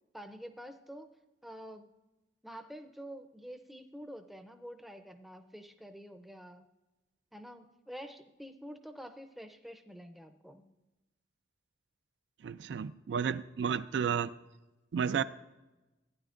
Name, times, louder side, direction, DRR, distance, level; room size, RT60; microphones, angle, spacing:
voice 1, 0.1-1.1 1.4-1.9 2.4-6.6 7.3-10.7, equal, ahead, 7 dB, 0.5 m, -48 dB
voice 2, 12.4-14.3 14.9-15.2, right 7 dB, 65° right, 14 dB, 0.3 m, -32 dB
15.0 x 9.8 x 2.5 m, 1.1 s
head